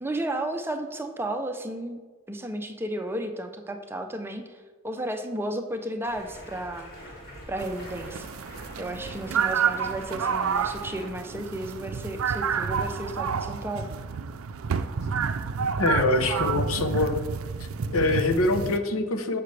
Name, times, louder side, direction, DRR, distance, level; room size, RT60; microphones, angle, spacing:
voice 1, 0.0-2.0 2.3-6.9 7.5-8.3 8.8-13.9, right 1 dB, 10° right, 5 dB, 0.5 m, -33 dB
Stream, 6.1-11.1, equal, 45° left, 2.8 m, -45 dB
sound 1, 7.6-18.8, right 6 dB, 80° right, 0.5 m, -29 dB
voice 2, 15.8-17.2 17.9-19.4, left 2 dB, 85° left, 7 dB, 0.9 m, -24 dB
14.5 x 5.9 x 3.3 m, 1.4 s
head